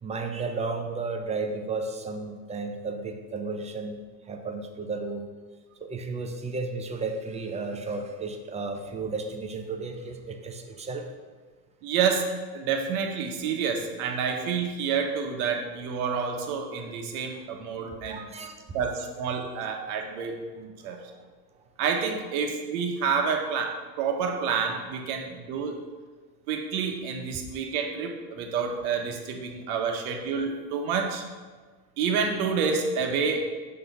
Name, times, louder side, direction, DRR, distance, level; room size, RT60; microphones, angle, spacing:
voice 1, 0.0-5.2 5.8-11.1 17.8-18.5 20.9-21.2, right 3 dB, 15° right, 4 dB, 0.6 m, -33 dB
voice 2, 11.8-18.3 18.7-21.0 21.8-25.8 26.5-31.2 32.0-33.5, right 6 dB, 60° right, 3 dB, 1.2 m, -28 dB
6.0 x 3.8 x 5.5 m, 1.4 s
hypercardioid pair, 95°, 49 cm